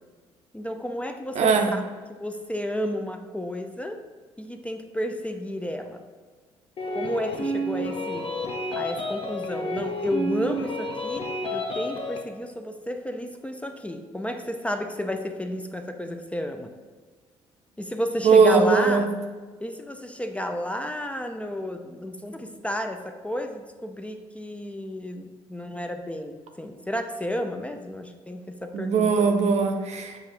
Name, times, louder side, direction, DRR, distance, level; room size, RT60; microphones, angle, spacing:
voice 1, 0.5-1.8 2.2-4.0 4.4-6.0 6.9-8.3 8.7-11.2 11.5-16.7 17.8-19.1 19.6-29.1, left 1 dB, 10° left, 6 dB, 0.4 m, -32 dB
voice 2, 1.4-1.7 18.2-19.1 28.7-30.2, right 5 dB, 50° right, 4 dB, 0.6 m, -20 dB
sound 1, 6.8-12.2, equal, 35° left, 0.7 m, -30 dB
6.6 x 2.4 x 3.2 m, 1.4 s
hypercardioid pair, 50°, 15 cm